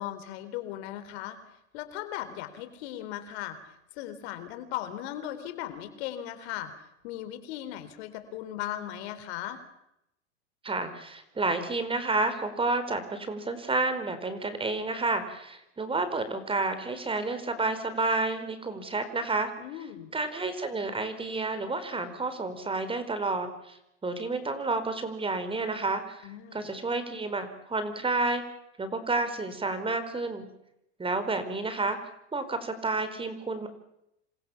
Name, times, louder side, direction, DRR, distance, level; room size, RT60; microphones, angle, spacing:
voice 1, 0.0-1.4 1.7-6.7 7.0-9.6 19.6-20.1 26.2-26.6, left 12 dB, 65° left, 10 dB, 4.1 m, -37 dB
voice 2, 10.6-19.5 20.1-23.8 24.0-28.4 28.8-30.5 31.0-32.0 32.3-33.7, right 3 dB, 15° right, 11 dB, 4.5 m, -30 dB
27.5 x 26.5 x 7.2 m, 0.82 s
hypercardioid pair, 110°, 35 cm